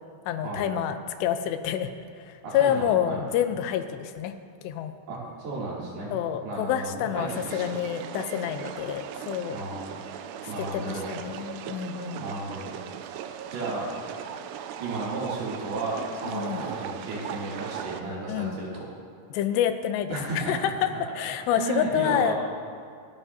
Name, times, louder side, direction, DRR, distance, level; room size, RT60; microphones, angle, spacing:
voice 1, 0.3-1.9 2.2-4.3 4.6-4.9 6.1-9.6 10.6-12.2 16.3-16.6 18.3-18.6 19.3-22.3, left 10 dB, 90° left, 8 dB, 2.9 m, -28 dB
voice 2, 2.4-3.3 5.1-6.1 6.4-7.7 9.5-9.9 10.5-11.1 12.2-12.7 13.5-13.9 14.8-18.9 20.1-21.0 21.5-22.4, right 3 dB, 65° right, -6 dB, 4.6 m, -33 dB
sound 1, 7.3-18.0, right 9 dB, 85° right, 2.7 m, -38 dB
27.5 x 9.2 x 2.8 m, 2.3 s
omnidirectional pair, 4.8 m